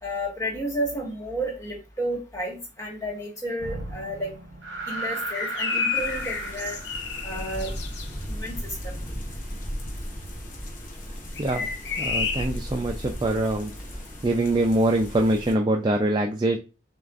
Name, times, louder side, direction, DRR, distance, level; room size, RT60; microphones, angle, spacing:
voice 1, 0.0-4.3 4.9-6.8 7.2-7.7 8.3-8.9 11.5-11.7, right 1 dB, 15° left, -3 dB, 1.6 m, -31 dB
sound 1, 3.6-8.0, right 2 dB, 65° right, 1.1 m, -35 dB
sound 2, 5.3-8.1 11.4-12.4, left 6 dB, 60° left, 0.6 m, -30 dB
sound 3, 5.9-15.5, equal, 40° left, 1.0 m, -36 dB
voice 2, 12.0-13.7 14.2-16.6, right 1 dB, 20° right, 2 dB, 0.3 m, -23 dB
6.5 x 2.5 x 2.5 m, 0.30 s
head